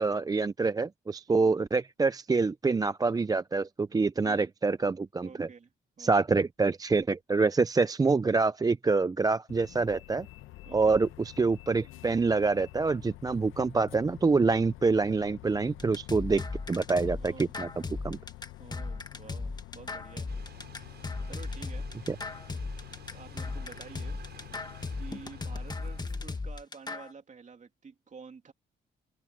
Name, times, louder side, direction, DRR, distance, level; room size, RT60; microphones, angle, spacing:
voice 1, 0.0-5.5 6.0-10.3 10.7-17.7 18.0-18.2 22.1-22.2, right 4 dB, 20° right, 0.4 m, -26 dB
voice 2, 5.2-6.4 10.6-11.0 17.1-17.5 18.6-20.3 21.3-21.9 23.1-24.2 25.0-28.5, right 5 dB, 40° right, 2.9 m, -50 dB
Bus, 9.5-26.4, left 16 dB, 90° left, 1.0 m, -48 dB
sound 1, 15.8-27.1, left 3 dB, 20° left, 1.6 m, -37 dB
sound 2, 20.3-26.4, right 8 dB, 55° right, 6.9 m, -54 dB
open air
cardioid pair, 90°, 20 cm